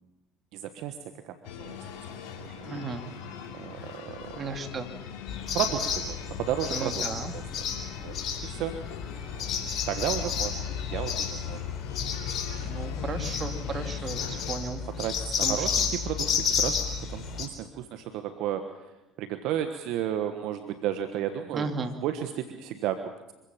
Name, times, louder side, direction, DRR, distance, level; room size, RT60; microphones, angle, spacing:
voice 1, 0.5-1.0 1.2-1.8 2.4-2.6 3.5-4.4 5.5-7.0 7.3-7.4 8.0-8.1 8.4-8.7 9.9-10.6 10.9-11.6 15.0-16.8 17.1-18.6 19.2-23.3, right 10 dB, 65° right, 8 dB, 1.3 m, -33 dB
sound 1, 1.4-14.6, left 7 dB, 70° left, 2.9 m, -41 dB
voice 2, 2.6-3.0 4.4-4.9 6.7-7.3 12.6-14.8 15.4-15.7 21.5-21.9, right 4 dB, 40° right, 6 dB, 2.7 m, -35 dB
sound 2, 5.3-17.5, left 7 dB, 50° left, 3.7 m, -31 dB
25.5 x 16.0 x 7.3 m, 1.0 s
hypercardioid pair, 65°, 0 cm